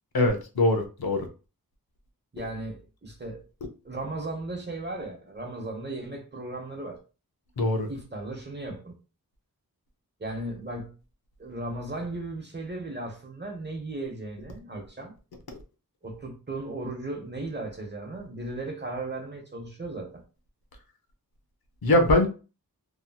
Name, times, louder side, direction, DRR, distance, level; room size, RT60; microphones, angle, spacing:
voice 1, 0.1-1.3 7.6-7.9 21.8-22.3, left 1 dB, 80° left, 0.7 m, -22 dB
voice 2, 2.3-3.4 3.8-7.0 7.9-8.9 10.2-10.9 11.4-15.1 16.0-20.2, right 2 dB, 30° right, 0.9 m, -36 dB
2.9 x 2.7 x 2.3 m
wide cardioid pair, 65°, 36 cm